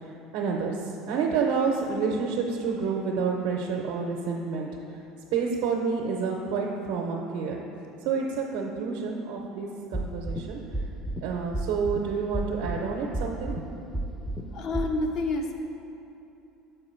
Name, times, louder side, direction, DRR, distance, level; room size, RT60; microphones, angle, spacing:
voice 1, 0.0-4.7 5.3-7.6 8.0-10.6 11.2-13.5, right 5 dB, 70° right, -1 dB, 0.6 m, -29 dB
sound 1, 9.9-10.4 10.7-11.2 11.5-12.0 12.3-12.8 13.1-13.6 13.9-14.4 14.7-14.9, right 1 dB, 5° left, 0.5 m, -30 dB
voice 2, 14.5-15.5, left 2 dB, 55° left, 3 dB, 0.8 m, -28 dB
6.7 x 4.9 x 4.4 m, 2.9 s
supercardioid pair, 100°, 0 cm